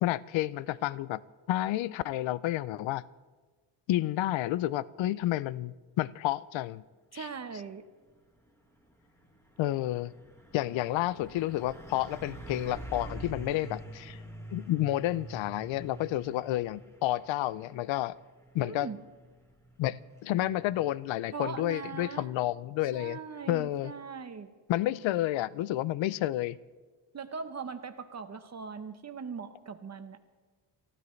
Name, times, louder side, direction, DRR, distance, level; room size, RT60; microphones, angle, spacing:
voice 1, 0.0-1.2 1.5-3.0 3.9-6.8 7.1-7.3 9.6-10.1 10.5-14.2 14.5-18.1 18.5-18.9 19.8-23.2 23.5-23.9 24.7-26.6, left 14 dB, 70° left, 19 dB, 0.5 m, -30 dB
voice 2, 7.1-7.8 18.6-19.0 21.3-22.3 22.8-24.5 27.1-30.3, right 5 dB, 35° right, 9 dB, 0.9 m, -40 dB
Truck, 8.1-22.4, right 1 dB, 5° left, 1.8 m, -47 dB
28.5 x 15.0 x 3.2 m, 1.3 s
cardioid pair, 130°, 48 cm